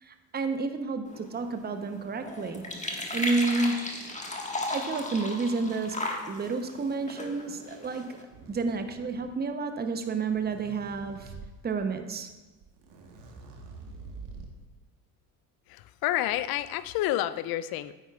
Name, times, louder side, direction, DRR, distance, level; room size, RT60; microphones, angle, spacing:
voice 1, 0.0-2.7 3.1-3.9 4.5-6.0 6.3-11.3 11.6-12.3, right 3 dB, 20° right, 7 dB, 0.8 m, -30 dB
sound 1, 1.0-8.2, left 1 dB, 15° left, 1.4 m, -36 dB
sound 2, 8.3-9.5 10.1-11.5 12.3-12.4 12.6-14.7, right 3 dB, 60° right, 1.5 m, -46 dB
voice 2, 15.7-17.9, left 14 dB, 50° left, 15 dB, 0.5 m, -29 dB
9.2 x 9.1 x 2.4 m, 1.2 s
hypercardioid pair, 60°, 47 cm